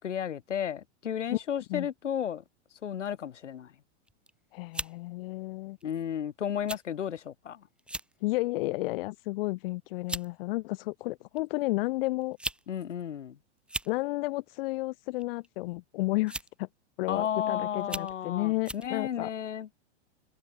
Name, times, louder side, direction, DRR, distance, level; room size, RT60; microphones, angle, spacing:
voice 1, 0.0-2.4 2.8-3.7 5.8-7.6 12.7-13.4 17.1-19.7, left 9 dB, 90° left, 4.5 m, -33 dB
sound 1, 4.1-4.3 4.7-5.0 5.8-6.0 6.7-6.8 7.1-7.3 7.8-8.1 8.6-8.9 9.7-9.8 10.1-10.3 11.4-11.5 12.2-12.6 12.9-13.0 13.6-13.9 15.2-15.5 16.3-16.6 17.2-17.3 17.8-18.1 18.6-18.9, right 1 dB, 5° right, 3.5 m, -37 dB
voice 2, 4.5-5.8 8.2-12.4 13.9-16.7 17.0-19.3, left 21 dB, 55° left, 1.4 m, -32 dB
hypercardioid pair, 130°, 35 cm